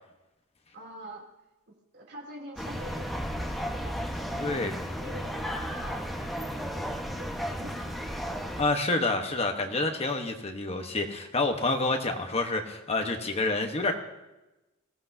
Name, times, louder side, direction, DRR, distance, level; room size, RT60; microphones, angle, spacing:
voice 1, 0.7-1.2 1.7-4.7 5.0-8.3, right 1 dB, 50° right, 0 dB, 3.1 m, -46 dB
sound 1, 2.6-8.6, equal, ahead, 1.3 m, -34 dB
voice 2, 4.4-4.8 8.6-13.9, left 2 dB, 30° left, 4 dB, 1.2 m, -28 dB
22.5 x 16.0 x 2.8 m, 1.0 s
head